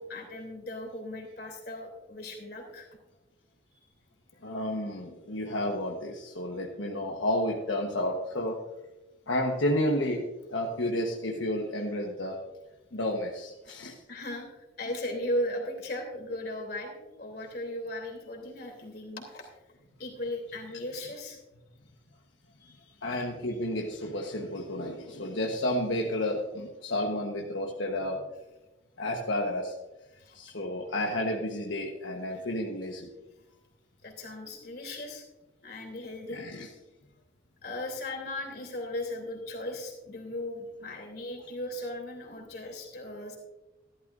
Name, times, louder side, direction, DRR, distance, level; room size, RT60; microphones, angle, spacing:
voice 1, 0.0-2.9 14.1-19.4 20.0-21.4 22.6-23.2 30.2-30.4 34.0-35.2 35.6-36.4 37.6-43.4, left 1 dB, 55° left, 1 dB, 3.1 m, -37 dB
voice 2, 4.4-8.6 9.3-12.4 12.9-14.0 23.0-28.2 29.0-29.7 30.3-33.1 36.3-36.7, left 1 dB, 80° left, 0 dB, 1.2 m, -31 dB
14.5 x 12.5 x 2.6 m, 1.0 s
head